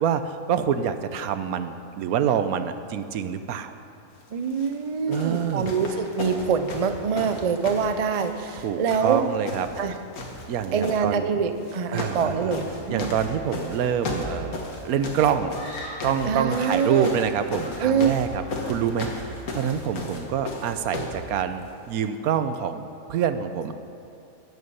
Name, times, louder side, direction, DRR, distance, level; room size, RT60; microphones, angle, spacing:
voice 1, 0.0-3.7 5.1-5.7 8.6-9.7 10.5-11.3 11.9-12.6 12.9-15.5 16.0-19.1 19.5-23.7, right 8 dB, 85° right, 10 dB, 1.1 m, -26 dB
voice 2, 4.3-9.2 9.8-9.9 10.7-13.1 16.3-17.2 17.8-18.1, right 6 dB, 45° right, 8 dB, 0.4 m, -25 dB
sound 1, 4.5-4.7 5.1-8.6 8.9-9.9 10.1-11.0 11.6-12.3 12.5-21.2 22.0-22.1, left 3 dB, 75° left, 1.9 m, -34 dB
Screaming, 15.5-16.9 17.5-18.1 18.4-18.8, left 1 dB, 55° left, 4.1 m, -41 dB
14.5 x 9.5 x 5.5 m, 2.7 s
omnidirectional pair, 1.5 m